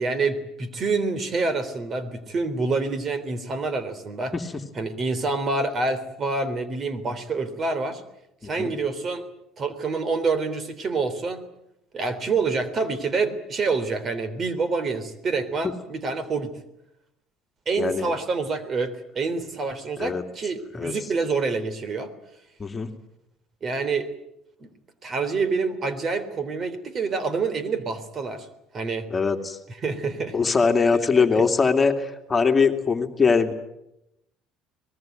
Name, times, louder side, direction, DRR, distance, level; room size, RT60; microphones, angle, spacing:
voice 1, 0.0-4.3 4.8-8.0 8.4-9.3 9.6-11.5 11.9-16.5 17.7-22.1 23.6-24.1 24.6-24.7 25.0-28.5 28.7-29.1 29.8-30.6 31.2-31.5, right 4 dB, 40° right, 13 dB, 3.5 m, -27 dB
voice 2, 17.8-18.1 20.0-20.2 20.7-20.9 22.6-22.9 29.1-29.6 30.3-33.5, left 5 dB, 25° left, 5 dB, 2.6 m, -21 dB
24.0 x 20.5 x 9.3 m, 0.84 s
supercardioid pair, 95°, 0 cm